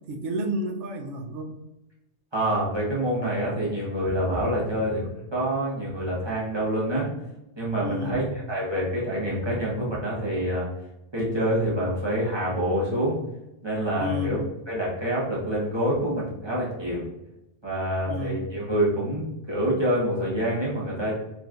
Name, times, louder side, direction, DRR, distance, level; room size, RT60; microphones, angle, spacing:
voice 1, 0.1-1.5 7.8-8.2 14.0-14.4 18.1-18.5, equal, 80° right, 3 dB, 0.9 m, -31 dB
voice 2, 2.3-7.1 7.6-10.7 11.1-13.2 13.6-14.4 14.7-17.1 17.6-21.1, equal, 25° right, -6 dB, 1.1 m, -26 dB
4.9 x 3.2 x 2.4 m, 0.91 s
omnidirectional pair, 1.2 m